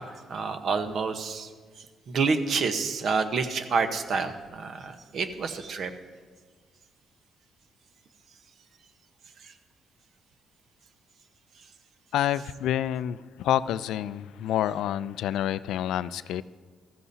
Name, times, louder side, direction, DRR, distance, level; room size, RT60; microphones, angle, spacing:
voice 1, 0.0-5.9 9.4-9.5, right 4 dB, 60° right, 7 dB, 1.0 m, -29 dB
voice 2, 12.1-16.4, left 11 dB, 85° left, 16 dB, 0.3 m, -28 dB
15.0 x 14.0 x 2.8 m, 1.5 s
cardioid pair, 90°, 0 cm